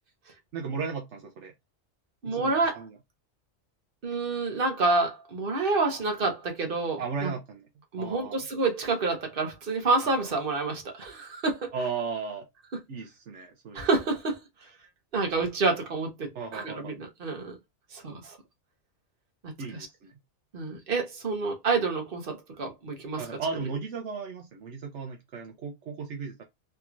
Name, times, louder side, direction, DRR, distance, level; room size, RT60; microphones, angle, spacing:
voice 1, 0.5-1.5 2.2-3.0 7.0-7.7 8.0-8.4 10.0-10.3 11.7-12.5 12.9-13.9 16.3-16.9 19.6-20.1 23.2-26.4, right 5 dB, 75° right, 1.0 m, -36 dB
voice 2, 2.2-2.8 4.0-7.3 7.9-11.7 13.7-14.4 15.1-17.6 17.9-18.4 19.4-19.5 20.5-23.3, right 3 dB, 50° right, 1.2 m, -28 dB
3.4 x 3.0 x 2.3 m
omnidirectional pair, 1.2 m